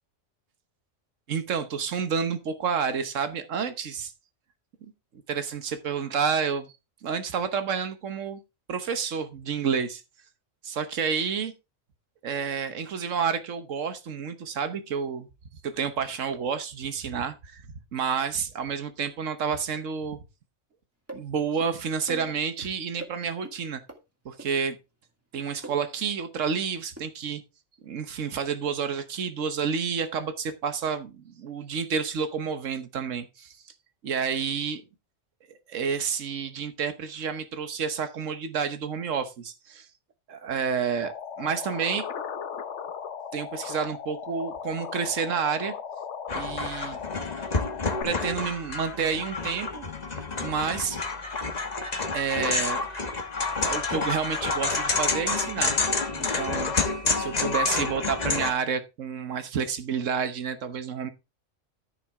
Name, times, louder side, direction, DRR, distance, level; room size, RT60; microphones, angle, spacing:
voice 1, 1.3-4.1 5.3-6.7 7.0-8.4 8.7-10.0 10.6-11.5 12.2-15.3 15.6-17.6 17.9-20.2 21.1-23.8 24.2-24.8 25.3-27.4 27.8-33.6 34.0-34.8 35.7-39.9 40.3-41.1 41.4-42.1 43.3-45.7 46.3-47.0 48.0-49.9 50.4-51.0 52.1-52.8 53.6-55.8 56.1-56.7 57.2-61.1, right 6 dB, 85° right, 9 dB, 1.4 m, -29 dB
sound 1, 21.1-21.2 21.6-21.7 22.1-22.7 23.0-23.1 23.4-23.6 23.9-24.0 24.4-24.5 25.6-25.8 27.0-27.1, right 2 dB, 10° right, 1.8 m, -40 dB
sound 2, 41.0-48.0, left 7 dB, 70° left, 1.2 m, -37 dB
sound 3, 46.3-58.5, left 3 dB, 35° left, 1.3 m, -29 dB
14.0 x 5.9 x 3.6 m, 0.26 s
omnidirectional pair, 1.3 m